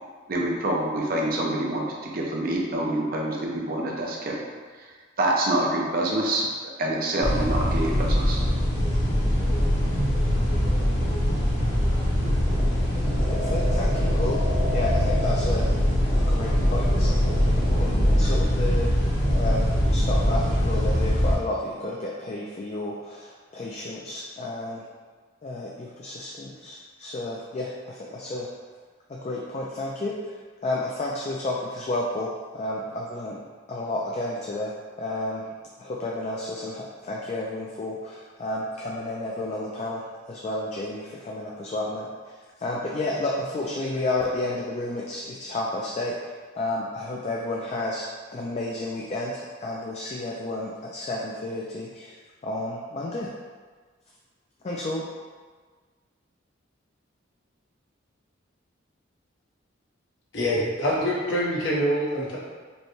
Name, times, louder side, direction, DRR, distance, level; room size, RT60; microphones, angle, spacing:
voice 1, 0.3-4.4 5.2-6.5 6.8-8.4, right 1 dB, 45° right, -2 dB, 0.6 m, -26 dB
sound 1, 7.2-21.3, equal, 85° left, 1.4 m, -22 dB
sound 2, 8.9-17.9, left 2 dB, 15° left, 0.8 m, -35 dB
voice 2, 13.3-14.4 14.7-15.7 16.3-17.1 17.4-17.5 17.8-18.9 19.2-24.8 25.4-28.5 29.2-30.1 30.6-32.3 32.6-33.4 33.7-34.7 35.0-35.4 35.8-42.1 42.6-46.1 46.6-48.0 48.3-49.3 49.6-52.1 52.4-53.3 54.6-55.0, left 2 dB, 35° left, -3 dB, 0.3 m, -31 dB
voice 3, 60.3-62.4, equal, 65° left, -6 dB, 1.1 m, -25 dB
5.2 x 2.2 x 3.1 m, 1.5 s
head